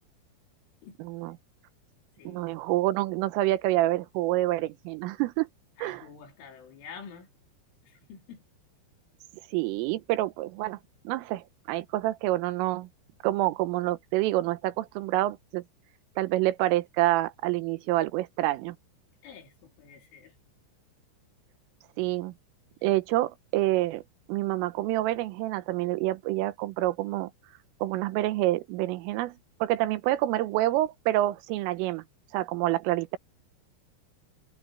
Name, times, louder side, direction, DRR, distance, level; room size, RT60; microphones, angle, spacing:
voice 1, 1.0-1.3 2.3-5.5 5.8-6.1 9.5-10.8 11.1-12.9 13.2-15.6 16.2-18.8 22.0-22.3 22.8-24.0 24.3-27.3 27.8-32.0 32.3-33.2, right 16 dB, 85° right, 3.6 m, -27 dB
voice 2, 2.2-2.6 5.8-7.3 7.8-8.4 19.2-20.3, left 6 dB, 75° left, 6.0 m, -48 dB
omnidirectional pair, 5.7 m